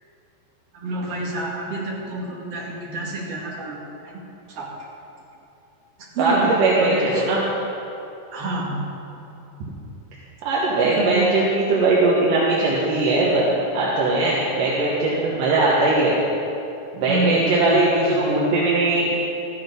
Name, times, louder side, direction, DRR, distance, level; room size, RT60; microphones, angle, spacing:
voice 1, 0.7-4.2 4.5-4.9 6.0-7.3 8.3-8.8 10.7-11.3 17.0-18.4, right 2 dB, 40° right, -5 dB, 2.7 m, -29 dB
voice 2, 6.2-7.4 9.6-9.7 10.5-13.5 13.7-16.1 16.9-19.1, right 2 dB, 60° right, -5 dB, 2.6 m, -20 dB
14.0 x 11.0 x 5.3 m, 2.9 s
omnidirectional pair, 4.9 m